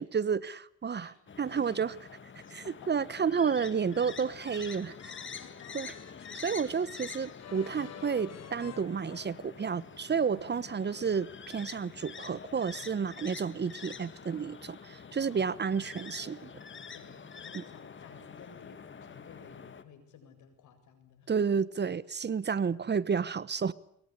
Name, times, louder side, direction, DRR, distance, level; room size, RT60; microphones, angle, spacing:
voice 1, 0.0-1.1 1.4-1.9 2.5-4.9 5.7-5.9 6.3-16.5 17.5-17.6 21.3-23.7, right 6 dB, 35° right, 19 dB, 1.1 m, -31 dB
voice 2, 1.0-2.9 3.3-3.5 5.1-5.9 6.3-6.5 7.7-7.9 10.3-10.5 15.2-15.5 16.9-21.5, left 7 dB, 80° left, 8 dB, 7.7 m, -55 dB
sound 1, 1.3-19.8, left 6 dB, 40° left, 2.4 m, -47 dB
sound 2, 4.4-9.8, left 9 dB, 55° left, 2.2 m, -50 dB
25.0 x 23.0 x 9.9 m, 0.68 s
cardioid pair, 90°, 30 cm